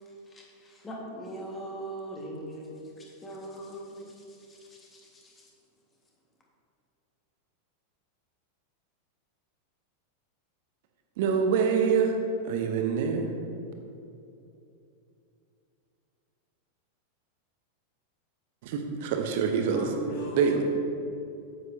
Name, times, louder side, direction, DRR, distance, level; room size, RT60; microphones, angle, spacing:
voice 1, 0.3-5.5, right 1 dB, 15° left, -2 dB, 1.6 m, -41 dB
voice 2, 11.2-12.2 12.4-13.3 18.6-20.0 20.4-20.6, right 6 dB, 50° right, 4 dB, 0.9 m, -25 dB
voice 3, 19.7-20.6, right 1 dB, 50° left, -4 dB, 1.9 m, -37 dB
9.1 x 8.1 x 2.8 m, 2.7 s
figure-of-eight pair, 90°, 0 cm